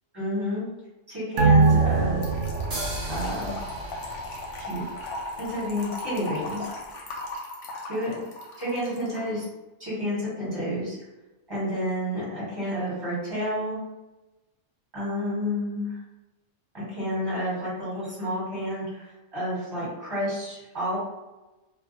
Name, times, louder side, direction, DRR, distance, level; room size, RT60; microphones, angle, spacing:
voice 1, 0.1-0.6 1.1-2.3 3.1-3.6 4.6-4.8 5.4-6.7 7.9-8.1 8.6-9.4 9.8-11.0 11.5-13.8 14.9-16.0 16.7-21.0, equal, 20° right, -10 dB, 1.4 m, -30 dB
sound 1, 1.4-4.3 4.6-4.7, right 4 dB, 85° right, 0.9 m, -23 dB
Trickle dribble / Fill (with liquid), 2.2-9.3, left 2 dB, 80° left, 0.9 m, -37 dB
sound 2, 2.7-6.3, right 2 dB, 45° right, 0.6 m, -40 dB
2.4 x 2.3 x 2.6 m, 1.1 s
omnidirectional pair, 1.2 m